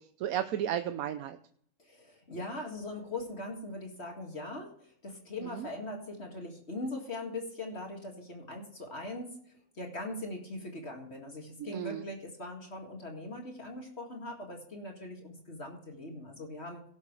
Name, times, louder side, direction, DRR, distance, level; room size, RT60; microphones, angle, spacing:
voice 1, 0.0-1.4 5.4-5.7 11.6-12.0, right 11 dB, 75° right, 9 dB, 1.1 m, -34 dB
voice 2, 1.8-9.4 9.8-16.8, left 2 dB, 45° left, 1 dB, 2.2 m, -41 dB
17.5 x 7.3 x 3.2 m, 0.64 s
omnidirectional pair, 1.6 m